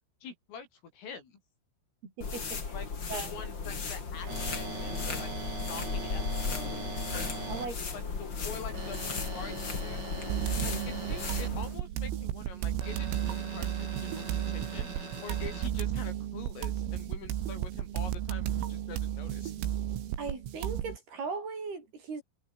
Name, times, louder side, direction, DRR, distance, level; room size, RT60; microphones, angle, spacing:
voice 1, 0.2-1.4 2.7-6.9 7.6-10.0 10.6-19.5, left 6 dB, 80° left, 8.8 m, -46 dB
voice 2, 2.0-2.7 3.1-3.3 7.5-7.8 10.5-10.8 20.2-22.2, right 4 dB, 50° right, 7.9 m, -38 dB
sound 1, 2.2-11.8, left 5 dB, 30° left, 2.7 m, -36 dB
sound 2, 4.3-7.7 8.7-11.5 12.8-15.7, right 3 dB, 20° right, 4.9 m, -41 dB
sound 3, 10.3-21.0, right 11 dB, 85° right, 5.2 m, -33 dB
omnidirectional pair, 5.8 m